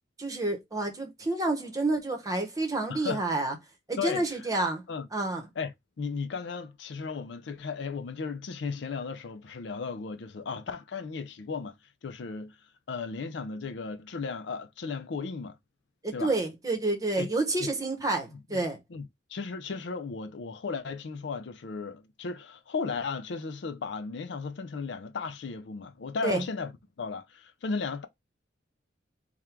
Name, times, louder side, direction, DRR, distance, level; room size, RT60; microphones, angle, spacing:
voice 1, 0.2-3.5 3.9-4.8 5.1-5.5 16.0-18.8 26.2-26.4, right 2 dB, 15° right, 0.9 m, -29 dB
voice 2, 2.9-3.2 4.0-4.5 4.9-5.1 5.6-11.8 12.0-12.6 12.9-15.6 16.1-16.3 17.2-17.3 17.6-17.7 18.3-18.6 18.9-26.7 27.0-28.1, left 5 dB, 60° left, 0.4 m, -35 dB
3.6 x 2.2 x 4.4 m
head